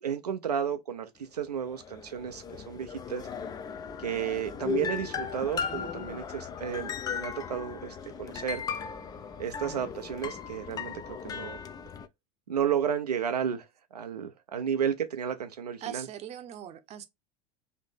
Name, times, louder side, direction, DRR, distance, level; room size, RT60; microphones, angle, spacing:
voice 1, 0.0-3.3 4.0-8.6 9.4-11.6 12.5-13.7 13.9-16.1, right 8 dB, 80° right, 0.5 m, -32 dB
sound 1, 1.6-12.1, left 7 dB, 20° left, 0.4 m, -37 dB
voice 2, 15.8-17.0, right 10 dB, 35° right, 0.7 m, -40 dB
4.2 x 2.6 x 3.3 m
figure-of-eight pair, 80°, 20 cm